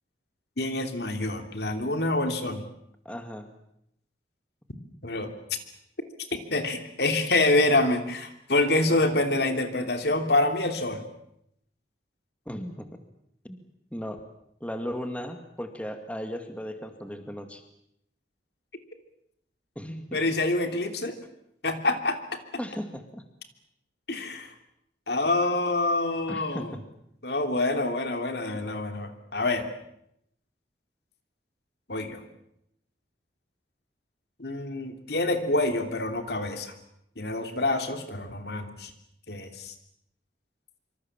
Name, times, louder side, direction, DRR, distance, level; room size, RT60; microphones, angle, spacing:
voice 1, 0.6-2.6 5.0-5.3 6.3-11.0 20.1-21.1 21.6-22.2 24.1-24.5 25.1-26.8 27.2-29.7 31.9-32.2 34.4-36.7 37.2-38.9 39.3-39.7, left 2 dB, 65° left, 7 dB, 3.0 m, -26 dB
voice 2, 3.1-3.5 12.5-12.9 13.4-13.6 13.9-14.2 14.6-17.6 19.8-20.2 22.6-23.2 26.3-26.7, equal, 5° left, 6 dB, 2.1 m, -36 dB
26.0 x 25.5 x 7.4 m, 0.76 s
head